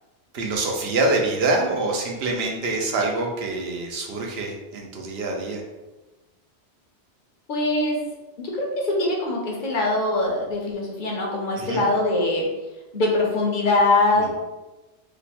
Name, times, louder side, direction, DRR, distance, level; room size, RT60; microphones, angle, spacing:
voice 1, 0.3-5.6 11.6-11.9 14.1-14.3, right 2 dB, 70° right, 1 dB, 0.9 m, -25 dB
voice 2, 7.5-8.0 8.4-12.5 12.9-14.3, left 2 dB, 50° left, -1 dB, 0.9 m, -22 dB
3.2 x 2.1 x 4.1 m, 1.1 s
omnidirectional pair, 1.1 m